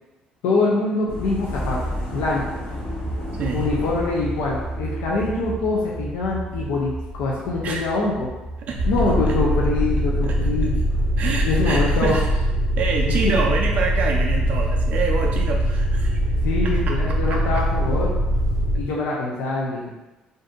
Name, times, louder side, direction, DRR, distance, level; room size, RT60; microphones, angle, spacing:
voice 1, 0.4-2.6 3.5-8.3 8.9-10.7 11.4-12.2 13.1-13.3 16.4-18.1 18.7-19.9, left 3 dB, 90° left, -4 dB, 0.5 m, -24 dB
sound 1, 1.1-13.7 14.0-14.9 15.5-15.6, right 1 dB, 65° left, 1.0 m, -33 dB
voice 2, 3.4-3.7 7.6-7.8 8.7-8.9 9.3-9.4 10.2-10.7 11.2-12.3 12.8-16.2 16.6-17.0 17.3-17.7, right 4 dB, 60° right, 0 dB, 0.3 m, -27 dB
sound 2, 8.7-18.8, equal, 5° left, 1.0 m, -22 dB
2.6 x 2.5 x 3.6 m, 1.1 s
cardioid pair, 100°, 3 cm